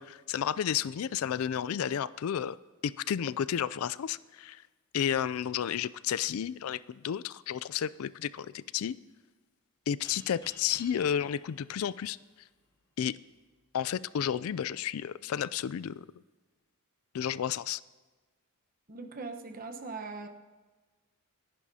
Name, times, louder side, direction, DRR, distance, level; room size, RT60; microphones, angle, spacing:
voice 1, 0.0-2.6 2.8-4.6 4.9-9.0 9.9-12.2 13.0-13.2 13.7-16.0 17.1-17.8, left 9 dB, 70° left, 18 dB, 0.3 m, -32 dB
sound 1, 10.0-12.8, left 2 dB, 20° left, 2.9 m, -53 dB
voice 2, 18.9-20.3, right 4 dB, 40° right, 6 dB, 1.0 m, -40 dB
26.5 x 11.0 x 2.8 m, 1.3 s
head